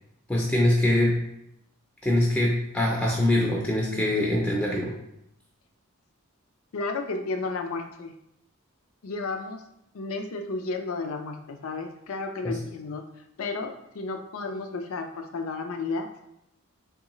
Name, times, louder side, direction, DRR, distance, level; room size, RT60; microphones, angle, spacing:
voice 1, 0.3-1.2 2.0-4.9 12.4-12.5, left 1 dB, 5° left, -3 dB, 0.4 m, -23 dB
voice 2, 6.7-8.1 9.0-9.6 9.9-13.0 13.4-16.1, left 3 dB, 80° left, 5 dB, 0.5 m, -32 dB
3.6 x 3.1 x 3.0 m, 0.82 s
head